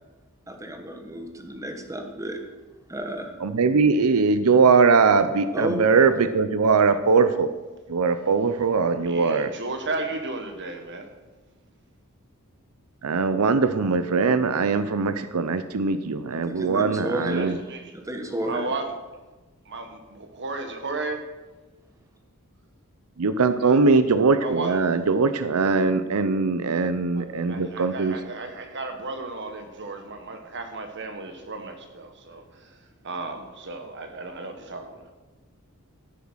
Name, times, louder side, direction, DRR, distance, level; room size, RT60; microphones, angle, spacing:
voice 1, 0.5-2.4 2.9-3.3 5.5-5.8 16.3-17.6 17.9-18.7, right 1 dB, 15° right, 4 dB, 1.3 m, -32 dB
voice 2, 3.4-7.5 7.9-9.5 13.0-17.6 23.2-28.2, right 4 dB, 85° right, 11 dB, 0.6 m, -21 dB
voice 3, 9.0-11.1 17.3-17.8 18.4-18.9 19.6-21.3 23.6-23.8 24.4-24.8 27.1-32.8 33.0-35.1, right 3 dB, 55° right, 5 dB, 1.5 m, -34 dB
13.5 x 7.2 x 6.3 m, 1.2 s
head